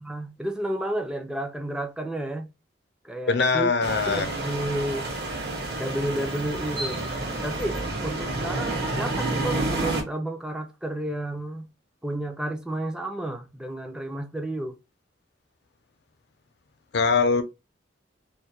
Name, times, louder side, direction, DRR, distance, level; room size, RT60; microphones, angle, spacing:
voice 1, 0.0-2.5 3.0-3.7 4.1-5.1 5.8-7.0 7.4-11.7 12.0-14.8, right 1 dB, 5° right, 0.3 m, -31 dB
voice 2, 3.3-4.3 16.9-17.4, left 4 dB, 65° left, 0.5 m, -22 dB
sound 1, 3.8-10.0, right 2 dB, 60° right, 0.9 m, -29 dB
2.3 x 2.1 x 2.8 m
head